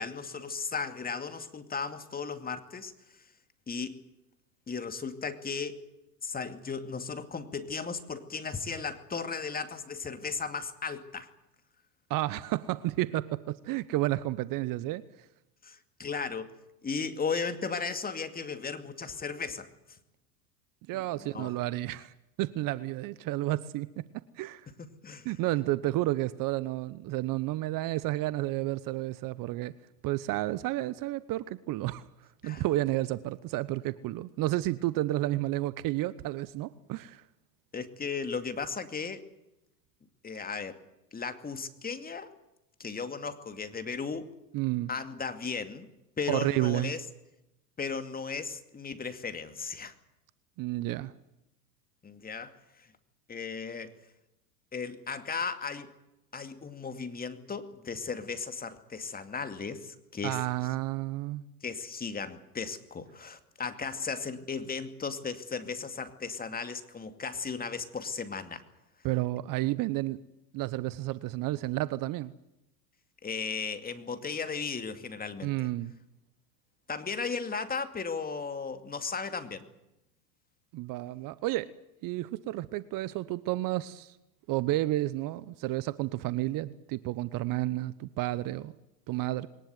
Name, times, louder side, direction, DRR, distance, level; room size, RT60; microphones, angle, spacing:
voice 1, 0.0-2.9 3.7-4.0 4.7-5.8 6.2-11.3 15.6-16.5 16.8-19.7 20.9-21.0 21.3-21.5 24.8-25.3 32.4-32.6 37.7-39.2 40.2-40.8 41.1-42.3 42.8-44.3 44.9-45.9 46.2-47.0 47.8-49.9 52.0-52.5 53.3-53.9 54.7-55.9 56.3-60.4 61.6-68.6 73.2-75.7 76.9-79.6, left 5 dB, 20° left, 9 dB, 2.4 m, -36 dB
voice 2, 12.1-15.0 20.9-22.1 22.4-24.1 24.4-24.7 25.2-29.7 30.0-32.0 32.4-37.2 44.5-44.9 46.3-46.9 50.6-51.1 60.2-61.4 69.0-70.2 70.5-72.3 75.4-76.0 80.7-81.7 82.0-84.2 84.5-88.7 89.1-89.5, right 17 dB, 40° right, 17 dB, 1.0 m, -31 dB
22.0 x 19.0 x 9.3 m, 0.90 s
hypercardioid pair, 100°, 48 cm